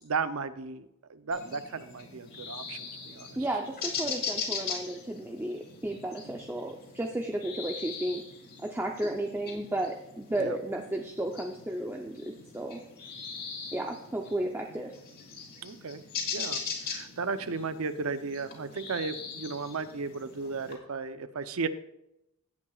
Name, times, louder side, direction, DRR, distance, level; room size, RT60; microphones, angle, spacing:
voice 1, 0.0-3.4 6.2-6.4 10.4-10.6 15.6-16.0 16.3-21.7, right 4 dB, 70° right, 12 dB, 0.7 m, -35 dB
sound 1, 1.3-20.7, left 5 dB, 50° left, 2.7 m, -40 dB
voice 2, 3.4-8.2 8.6-12.8 13.7-14.9, right 1 dB, 10° right, 2 dB, 0.6 m, -33 dB
17.0 x 8.7 x 2.4 m, 0.84 s
head